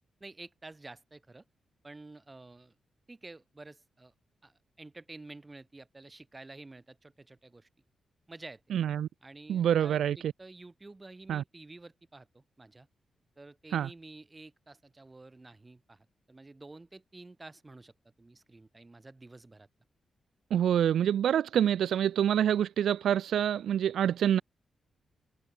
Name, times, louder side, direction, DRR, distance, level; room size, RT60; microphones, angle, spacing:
voice 1, 0.2-1.4 1.8-2.7 3.1-4.1 4.4-7.7 8.3-8.6 9.2-12.9 13.4-17.9 18.2-19.7, right 2 dB, 15° right, 5.1 m, -50 dB
voice 2, 8.7-9.1 9.5-10.3 11.3-11.4 13.7-13.9 20.5-24.4, right 10 dB, 85° right, 0.5 m, -26 dB
wide cardioid pair, 170°, 0 cm